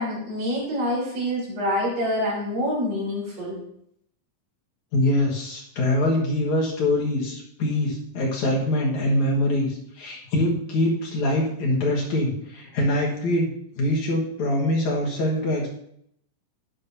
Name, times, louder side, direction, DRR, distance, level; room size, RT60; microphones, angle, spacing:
voice 1, 0.0-3.6, left 1 dB, 85° right, -6 dB, 5.8 m, -26 dB
voice 2, 4.9-13.5 13.8-15.7, left 1 dB, 60° left, -2 dB, 2.9 m, -24 dB
11.5 x 10.5 x 2.8 m, 0.71 s
omnidirectional pair, 3.8 m